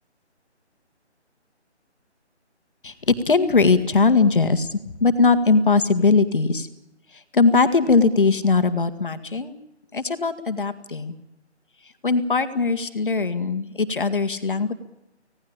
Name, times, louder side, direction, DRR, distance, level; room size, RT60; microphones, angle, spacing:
voice 1, 2.8-6.7 7.3-9.6 9.9-11.1 12.0-14.7, left 4 dB, 45° left, 9 dB, 1.9 m, -20 dB
25.5 x 17.5 x 8.8 m, 0.92 s
figure-of-eight pair, 175°, 35 cm